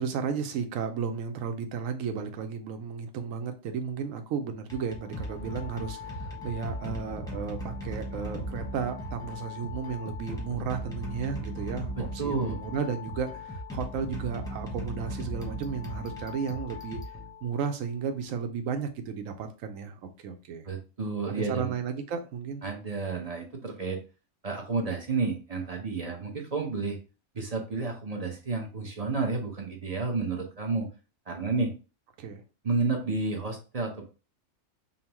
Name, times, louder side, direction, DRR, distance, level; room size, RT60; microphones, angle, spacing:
voice 1, 0.0-17.0 17.4-20.7 21.3-22.6 32.2-32.4, right 6 dB, 90° right, 1.0 m, -34 dB
sound 1, 4.6-17.8, equal, 5° left, 0.8 m, -38 dB
voice 2, 12.2-12.6 20.6-21.7 22.6-24.0 24.4-27.0 27.3-30.9 31.3-31.7 32.6-34.0, right 4 dB, 40° right, 0.7 m, -31 dB
5.3 x 2.1 x 2.9 m
omnidirectional pair, 1.3 m